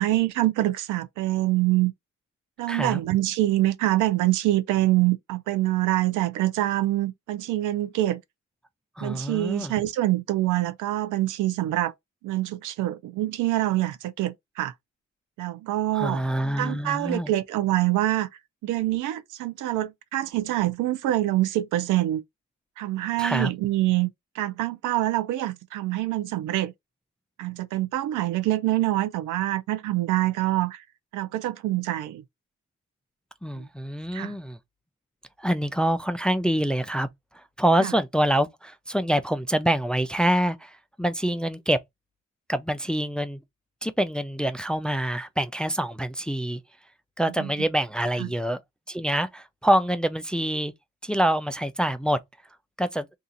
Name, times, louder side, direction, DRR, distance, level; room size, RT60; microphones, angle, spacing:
voice 1, 0.0-1.9 2.6-8.2 9.0-11.9 12.2-14.7 15.4-16.2 16.6-18.3 18.6-22.2 22.8-24.1 24.4-26.7 27.4-30.8 31.1-32.2 33.6-33.7 34.1-34.3 37.8-37.9 47.4-47.5 48.2-48.3, right 15 dB, 85° right, 0.6 m, -25 dB
voice 2, 2.7-3.0 9.0-9.7 15.9-17.3 23.2-23.5 33.4-34.6 35.4-37.1 37.6-41.8 42.5-43.4 43.8-46.6 47.2-48.6 48.9-50.7 51.0-52.2 52.8-53.1, right 1 dB, 5° left, 0.3 m, -25 dB
2.8 x 2.4 x 3.7 m
cardioid pair, 90°, 30 cm